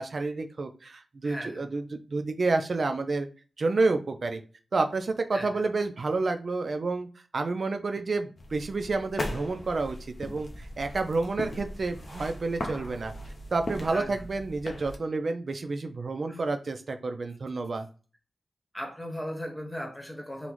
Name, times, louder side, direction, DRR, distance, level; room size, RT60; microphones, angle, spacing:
voice 1, 0.0-3.3 3.6-4.4 4.7-7.1 7.3-13.1 13.5-17.9, right 3 dB, 60° right, 6 dB, 0.3 m, -29 dB
voice 2, 1.2-1.6 5.3-5.5 13.9-14.1 16.3-16.4 18.7-20.5, equal, 15° left, 2 dB, 1.0 m, -37 dB
sound 1, 8.4-15.0, left 1 dB, 55° left, 0.5 m, -38 dB
3.8 x 2.1 x 3.0 m, 0.36 s
wide cardioid pair, 75°, 0 cm